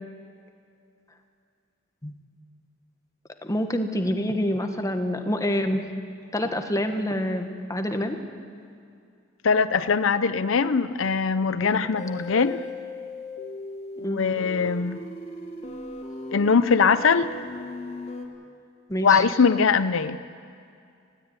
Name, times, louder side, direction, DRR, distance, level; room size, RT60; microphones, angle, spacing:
voice 1, 3.4-5.9 6.3-8.2 11.6-11.8 14.0-14.2 18.9-19.2, equal, 15° left, 6 dB, 1.4 m, -27 dB
voice 2, 9.4-12.6 14.0-15.0 16.3-17.4 19.0-20.2, left 5 dB, 75° left, 12 dB, 0.6 m, -21 dB
sound 1, 12.0-18.3, left 2 dB, 35° left, 2.9 m, -37 dB
19.5 x 16.5 x 9.7 m, 2.4 s
head